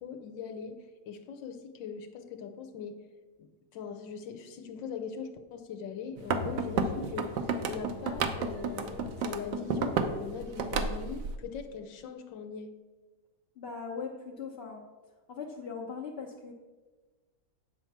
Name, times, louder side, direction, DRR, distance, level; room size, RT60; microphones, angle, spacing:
voice 1, 0.0-3.1 3.4-12.8, left 6 dB, 85° left, 5 dB, 1.4 m, -41 dB
sound 1, 6.2-10.2 10.4-11.3, right 4 dB, 70° right, 1.4 m, -31 dB
voice 2, 13.6-14.8 15.3-16.5, left 5 dB, 45° left, -3 dB, 0.9 m, -39 dB
9.2 x 4.5 x 7.2 m, 1.3 s
omnidirectional pair, 2.0 m